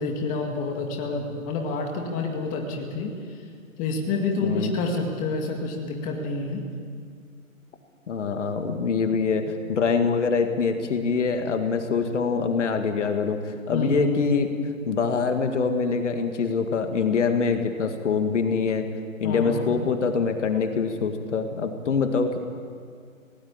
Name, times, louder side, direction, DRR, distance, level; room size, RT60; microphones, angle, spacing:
voice 1, 0.0-3.1 3.8-6.6 13.7-14.1 19.2-19.8, left 3 dB, 20° left, 2 dB, 2.0 m, -28 dB
voice 2, 4.4-4.7 8.1-18.9 19.2-22.4, left 5 dB, 55° left, 6 dB, 2.1 m, -24 dB
19.0 x 18.0 x 8.7 m, 2.2 s
figure-of-eight pair, 140°, 42 cm